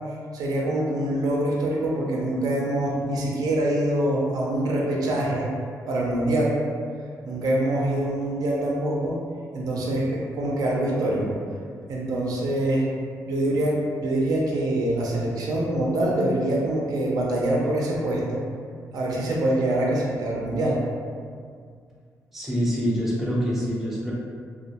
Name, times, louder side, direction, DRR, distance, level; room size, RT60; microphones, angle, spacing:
voice 1, 0.3-5.5 5.9-6.6 7.3-9.2 9.5-11.3 11.9-13.0 13.2-18.4 18.9-20.8, right 1 dB, 70° right, -3 dB, 0.4 m, -24 dB
voice 2, 22.3-24.1, equal, 5° right, -7 dB, 0.5 m, -25 dB
2.2 x 2.1 x 2.7 m, 2.1 s
wide cardioid pair, 145°, 7 cm